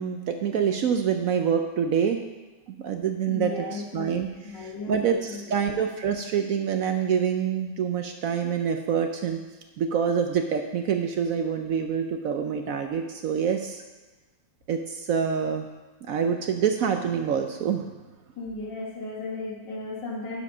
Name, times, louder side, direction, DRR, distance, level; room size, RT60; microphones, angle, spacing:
voice 1, 0.0-2.2 2.8-9.4 9.8-13.8 14.7-15.7 16.1-17.8, right 7 dB, 65° right, 5 dB, 0.9 m, -26 dB
voice 2, 3.3-4.0 4.4-5.4 5.7-5.8 18.4-20.4, left 3 dB, 85° left, -2 dB, 2.4 m, -35 dB
11.0 x 5.1 x 5.4 m, 1.2 s
omnidirectional pair, 1.9 m